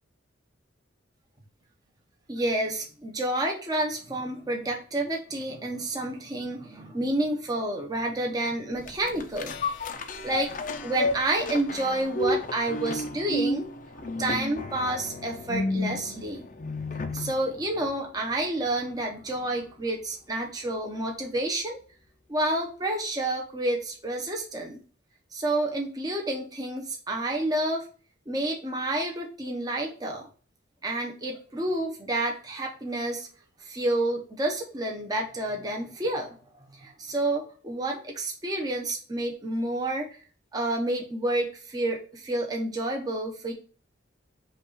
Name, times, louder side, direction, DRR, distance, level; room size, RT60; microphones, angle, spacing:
voice 1, 2.3-9.7 10.2-10.5 10.8-13.7 14.0-16.5 17.1-21.8 22.3-24.8 25.3-27.9 28.3-30.3 30.8-33.3 33.6-36.4 36.7-40.1 40.5-43.5, right 1 dB, 20° right, 1 dB, 0.7 m, -29 dB
sound 1, 8.8-17.4 17.9-18.0, left 2 dB, 40° left, 0.4 m, -31 dB
5.3 x 2.4 x 3.9 m, 0.38 s
head